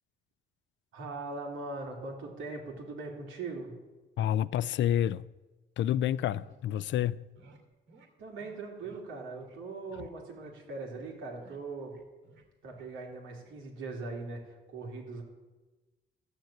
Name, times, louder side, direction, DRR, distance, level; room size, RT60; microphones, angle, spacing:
voice 1, 0.9-3.7 8.2-12.0 12.6-15.2, right 3 dB, 90° right, 3.1 m, -40 dB
voice 2, 4.2-5.2 5.8-7.3, left 11 dB, 70° left, 0.4 m, -28 dB
sound 1, 5.8-6.6 6.8-7.0 7.4-7.6 7.9-8.1 8.4-9.1 9.4-9.6 9.9-10.1 10.4-11.1 11.4-13.1 13.3-13.6, right 3 dB, 70° right, 2.6 m, -59 dB
13.0 x 6.6 x 8.7 m
cardioid pair, 90°, 20 cm